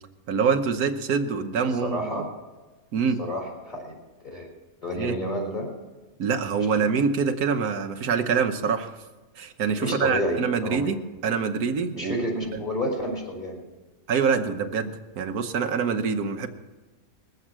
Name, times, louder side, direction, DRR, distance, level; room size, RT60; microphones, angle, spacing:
voice 1, 0.3-2.3 2.9-3.2 4.9-5.2 6.2-9.0 9.4-12.2 12.5-12.6 14.1-16.5, right 6 dB, 85° right, 5 dB, 1.4 m, -25 dB
voice 2, 1.7-2.2 3.2-3.9 4.2-4.5 4.8-5.7 9.8-10.9 12.0-13.6, equal, 30° left, -2 dB, 4.9 m, -30 dB
20.5 x 8.0 x 7.4 m, 1.2 s
omnidirectional pair, 1.5 m